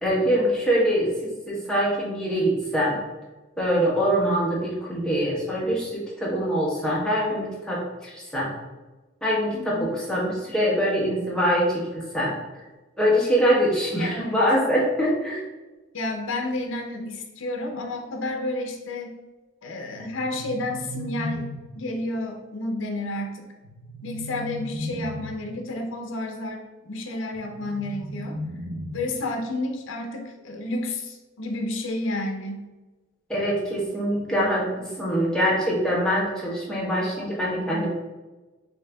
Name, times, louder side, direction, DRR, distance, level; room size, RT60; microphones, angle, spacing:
voice 1, 0.0-3.0 3.6-8.5 9.2-12.3 13.0-15.4 33.3-37.9, equal, 5° left, -6 dB, 1.1 m, -24 dB
voice 2, 9.5-9.8 14.0-14.4 15.9-19.1 19.6-21.5 21.8-23.5 24.0-28.4 28.9-32.6, left 2 dB, 70° left, 2 dB, 0.6 m, -31 dB
sound 1, 19.9-21.9 23.6-25.5 27.3-29.3, equal, 75° right, 0.7 m, -36 dB
6.3 x 2.7 x 2.3 m, 1.2 s
head